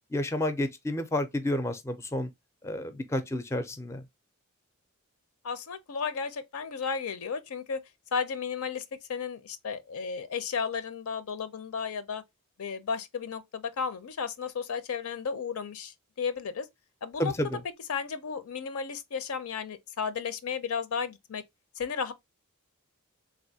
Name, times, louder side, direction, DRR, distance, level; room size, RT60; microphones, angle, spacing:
voice 1, 0.1-2.3 2.6-4.0 17.2-17.6, left 1 dB, 15° left, 0.4 m, -30 dB
voice 2, 5.4-7.8 8.1-8.8 9.1-12.2 12.6-16.7 17.0-17.3 17.9-21.4 21.8-22.1, left 6 dB, 80° left, 0.5 m, -33 dB
3.3 x 2.5 x 2.7 m
head